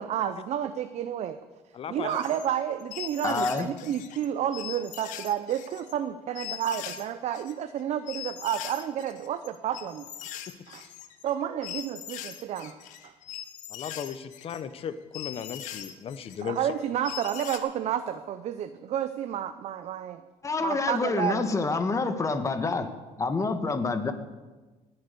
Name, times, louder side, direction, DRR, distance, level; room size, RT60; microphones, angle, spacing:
voice 1, 0.0-1.4 1.9-10.3 10.7-10.9 11.2-12.8 13.0-13.1 16.4-20.2 20.6-21.5, right 10 dB, 60° right, 11 dB, 0.7 m, -31 dB
voice 2, 1.7-2.2 13.7-16.6, left 8 dB, 50° left, 13 dB, 1.0 m, -36 dB
sound 1, 2.1-2.5 2.8-4.3 4.5-5.9 6.3-7.0 7.3-17.6, left 11 dB, 85° left, 1.3 m, -41 dB
voice 3, 3.2-3.7 20.4-22.9 23.2-24.1, left 3 dB, 25° left, 9 dB, 1.5 m, -27 dB
19.0 x 8.0 x 6.9 m, 1.2 s
cardioid pair, 115°, 13 cm